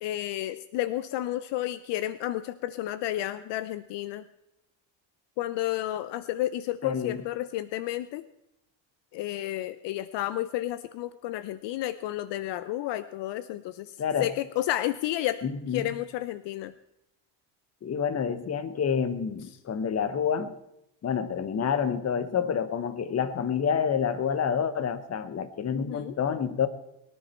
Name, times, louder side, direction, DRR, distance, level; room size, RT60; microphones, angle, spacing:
voice 1, 0.0-4.2 5.4-8.2 9.1-13.9 14.2-15.4 15.7-16.7 25.7-26.1, left 14 dB, 65° left, 0.7 m, -31 dB
voice 2, 6.8-7.2 14.0-14.3 15.4-15.9 17.8-20.5 21.0-26.7, left 7 dB, 35° left, 1.2 m, -28 dB
22.5 x 10.0 x 4.4 m
cardioid pair, 105°, 45 cm